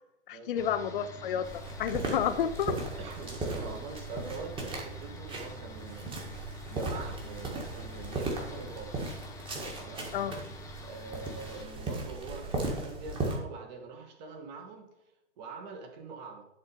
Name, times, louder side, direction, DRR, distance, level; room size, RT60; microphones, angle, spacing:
voice 1, 0.3-1.5 1.8-2.8 10.1-10.4, left 8 dB, 50° left, 12 dB, 0.5 m, -30 dB
sound 1, 0.6-11.6, left 1 dB, 10° left, 0.6 m, -47 dB
sound 2, 1.4-13.4, right 2 dB, 15° right, 1.6 m, -37 dB
voice 2, 3.0-6.3 6.7-9.0 9.8-10.1 10.8-14.9 15.4-16.5, right 4 dB, 40° right, 4 dB, 1.7 m, -44 dB
10.5 x 3.9 x 5.1 m, 0.88 s
figure-of-eight pair, 120°, 35 cm